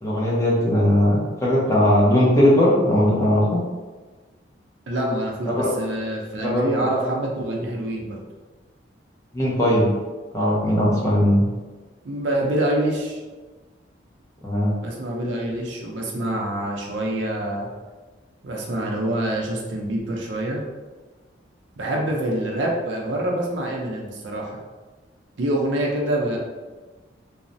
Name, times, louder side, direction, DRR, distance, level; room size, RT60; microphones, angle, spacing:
voice 1, 0.0-3.6 5.5-5.7 6.4-6.9 9.3-9.9 10.3-11.4 14.4-14.7, left 1 dB, 15° left, -6 dB, 0.6 m, -19 dB
voice 2, 4.9-8.2 12.0-13.2 14.8-17.7 18.4-20.6 21.8-24.6 25.4-26.4, right 1 dB, 70° right, -1 dB, 0.5 m, -26 dB
3.1 x 2.0 x 2.5 m, 1.3 s
head